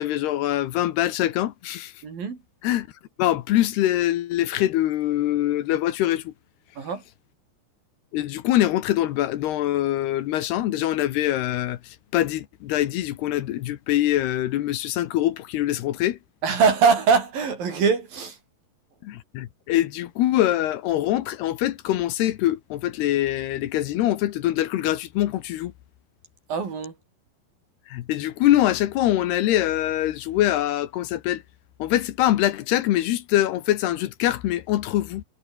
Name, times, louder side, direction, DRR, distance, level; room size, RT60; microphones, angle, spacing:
voice 1, 0.0-1.9 2.6-2.9 3.2-6.3 8.1-11.8 12.1-16.2 19.0-25.7 27.9-31.4 31.8-35.2, left 14 dB, 75° left, 3.2 m, -23 dB
voice 2, 2.0-2.4 6.8-7.0 16.4-18.4 26.5-26.9, right 5 dB, 55° right, 6.1 m, -22 dB
omnidirectional pair, 4.8 m